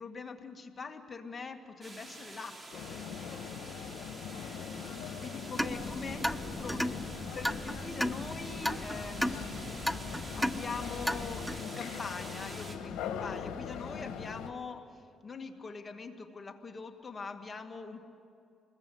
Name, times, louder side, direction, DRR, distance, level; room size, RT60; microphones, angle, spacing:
voice 1, 0.0-3.8 4.2-9.7 10.3-18.1, left 4 dB, 35° left, 5 dB, 2.0 m, -43 dB
sound 1, 1.8-12.8, right 2 dB, 30° right, 3.5 m, -48 dB
sound 2, 2.7-14.5, left 7 dB, 90° left, 1.5 m, -41 dB
sound 3, 5.6-11.6, equal, ahead, 0.6 m, -35 dB
26.5 x 21.0 x 7.9 m, 2.5 s
cardioid pair, 90°, 0 cm